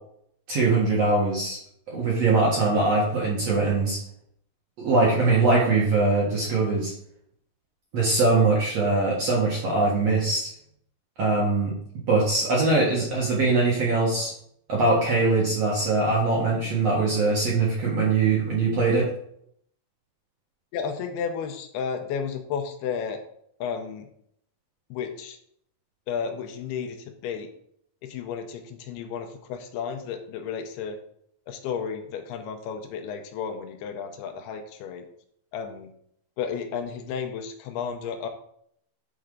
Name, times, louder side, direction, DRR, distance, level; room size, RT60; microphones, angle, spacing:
voice 1, 0.5-1.6 1.9-4.0 4.8-6.9 7.9-10.5 11.2-11.7 12.1-14.3 14.7-19.1, right 3 dB, 55° right, -4 dB, 1.9 m, -22 dB
voice 2, 20.7-23.2 23.6-24.1 24.9-25.4 26.1-27.5 28.0-31.0 31.5-35.1 35.5-35.9 36.4-38.3, left 6 dB, 80° left, 6 dB, 2.7 m, -32 dB
9.3 x 4.5 x 3.8 m, 0.69 s
omnidirectional pair, 4.6 m